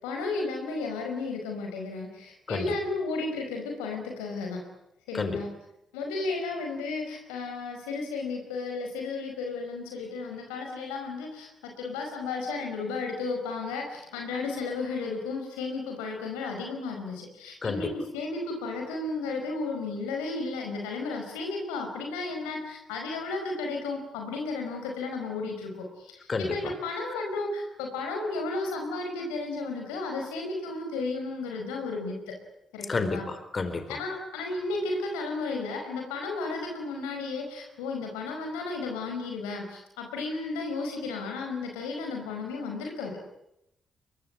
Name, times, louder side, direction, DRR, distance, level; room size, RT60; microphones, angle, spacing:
voice 1, 0.0-4.6 5.1-5.5 5.9-32.3 32.7-33.3 33.9-43.1, left 3 dB, 85° left, 2 dB, 5.0 m, -33 dB
voice 2, 32.9-33.9, left 4 dB, 45° left, 10 dB, 4.1 m, -30 dB
23.0 x 22.5 x 9.8 m, 0.82 s
hypercardioid pair, 45°, 0 cm